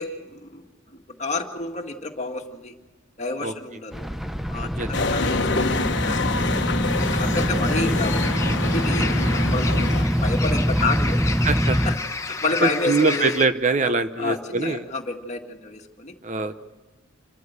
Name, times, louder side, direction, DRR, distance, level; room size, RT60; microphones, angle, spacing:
voice 1, 0.0-2.7 3.2-4.1 4.5-6.7 7.1-11.2 11.8-13.4 14.2-16.1, left 3 dB, 35° left, 3 dB, 1.9 m, -30 dB
sound 1, 3.9-12.0, equal, ahead, 0.6 m, -24 dB
sound 2, 4.9-10.0, left 3 dB, 60° left, 1.2 m, -26 dB
sound 3, 7.0-13.5, left 4 dB, 15° left, 1.1 m, -32 dB
voice 2, 11.4-11.8 12.6-14.8 16.2-16.6, right 3 dB, 35° right, 10 dB, 0.8 m, -23 dB
28.0 x 13.5 x 8.2 m, 1.2 s
head